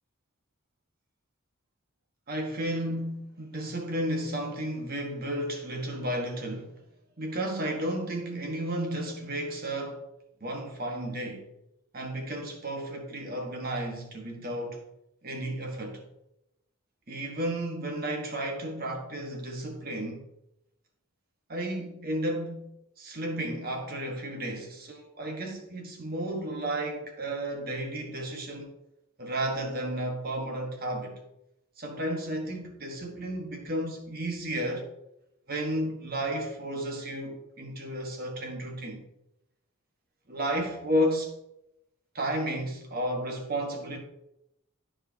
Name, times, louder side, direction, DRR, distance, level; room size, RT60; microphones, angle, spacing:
voice 1, 2.3-6.8 7.2-10.1 10.4-11.5 11.9-14.8 15.2-16.0 17.1-20.2 21.5-22.7 23.0-28.7 29.2-31.2 31.8-34.9 35.5-39.0 40.3-41.3 42.1-44.0, right 1 dB, 45° right, 1.4 m, -33 dB
13.0 x 4.9 x 2.8 m
head